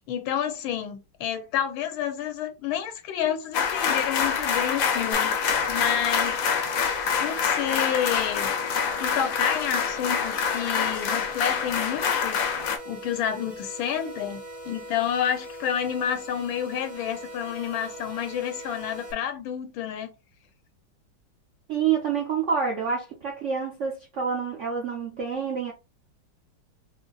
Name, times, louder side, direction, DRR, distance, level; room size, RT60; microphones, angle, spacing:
voice 1, 0.0-6.4 7.2-8.5 9.0-20.1, left 9 dB, 85° left, 1.5 m, -29 dB
sound 1, 3.5-12.8, left 7 dB, 65° left, 0.9 m, -26 dB
sound 2, 5.1-19.1, right 1 dB, 40° right, 1.4 m, -41 dB
voice 2, 21.7-25.7, right 6 dB, 65° right, 0.7 m, -27 dB
5.1 x 2.1 x 2.3 m
omnidirectional pair, 2.2 m